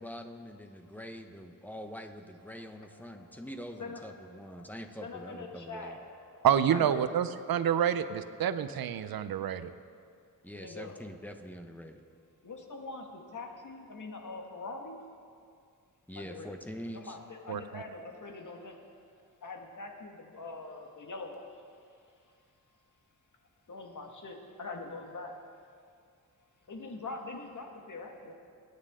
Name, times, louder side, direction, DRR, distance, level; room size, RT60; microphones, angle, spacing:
voice 1, 0.0-6.0 10.4-12.0 16.1-17.2, equal, 5° left, 5 dB, 1.0 m, -44 dB
voice 2, 2.5-3.4 3.8-6.9 10.5-11.0 12.4-15.0 16.2-16.6 16.9-18.8 19.4-21.6 23.7-25.3 26.7-28.3, left 3 dB, 60° left, 2 dB, 1.8 m, -44 dB
voice 3, 6.4-9.7 17.5-17.8, right 9 dB, 85° right, 12 dB, 0.6 m, -28 dB
22.0 x 9.5 x 3.7 m, 2.3 s
cardioid pair, 75°, 35 cm